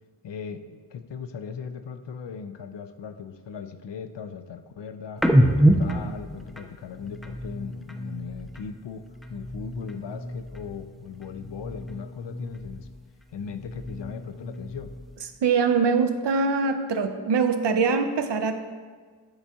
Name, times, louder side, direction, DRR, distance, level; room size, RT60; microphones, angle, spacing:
voice 1, 0.2-5.2 5.6-12.9 13.3-14.9, left 6 dB, 70° left, 8 dB, 0.5 m, -38 dB
sound 1, 5.2-8.7 9.1-10.9 11.2-13.0 13.4-15.2, right 1 dB, ahead, 0.4 m, -27 dB
voice 2, 15.4-18.5, right 5 dB, 70° right, 8 dB, 0.6 m, -23 dB
9.8 x 3.4 x 2.8 m, 1.5 s
cardioid pair, 40°, 44 cm